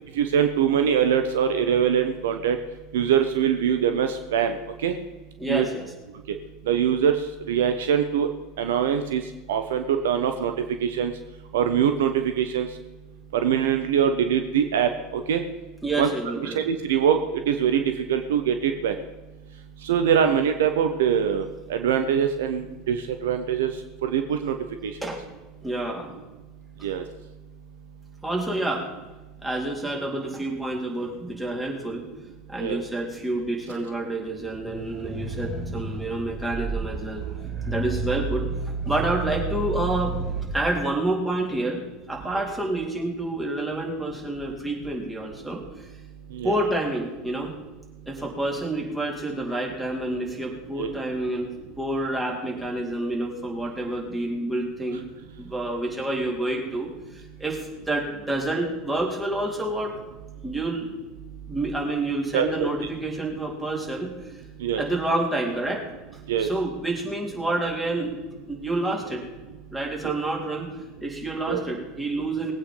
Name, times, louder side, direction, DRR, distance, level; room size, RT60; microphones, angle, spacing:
voice 1, 0.2-2.6 2.9-4.5 4.8-4.9 5.5-5.7 6.7-7.2 7.5-8.3 8.6-9.2 9.5-10.5 10.8-11.1 11.5-12.7 13.3-15.4 16.0-16.1 16.4-17.2 17.5-17.8 18.1-18.9 19.9-21.4 21.7-23.0 23.2-23.7 24.0-24.5 24.8-24.9 26.8-27.0 32.6-32.8 46.4-46.6 50.8-50.9 62.3-62.7 64.6-64.8 66.3-66.5 70.0-70.2 71.5-71.6, right 8 dB, 65° right, 7 dB, 1.0 m, -23 dB
voice 2, 5.4-5.9 15.8-16.6 25.0-25.2 25.6-26.1 26.8-26.9 28.2-28.9 29.4-32.1 32.5-37.2 37.7-40.1 40.5-41.8 42.1-45.9 46.4-47.5 48.1-51.5 51.8-55.0 55.4-59.9 60.4-60.9 61.5-64.1 64.8-65.8 66.4-68.1 68.5-69.3 69.7-70.7 71.0-72.5, right 2 dB, 5° right, -1 dB, 3.8 m, -28 dB
sound 1, 34.4-40.6, right 4 dB, 25° right, 2.9 m, -31 dB
19.5 x 8.7 x 5.5 m, 1.2 s
figure-of-eight pair, 75°, 0 cm